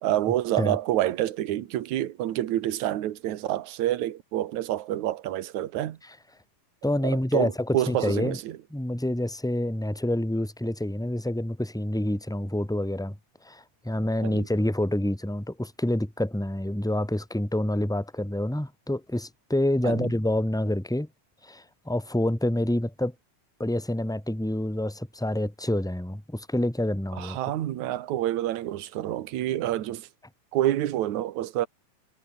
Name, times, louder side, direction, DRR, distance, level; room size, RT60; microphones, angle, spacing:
voice 1, 0.0-6.0 7.0-8.6 14.2-14.5 19.8-20.1 27.2-30.1 30.5-31.7, right 13 dB, 65° right, 2.6 m, -28 dB
voice 2, 6.8-8.4 8.7-13.2 13.4-21.1 21.4-23.1 23.6-27.4, left 1 dB, ahead, 1.3 m, -27 dB
omnidirectional pair, 3.7 m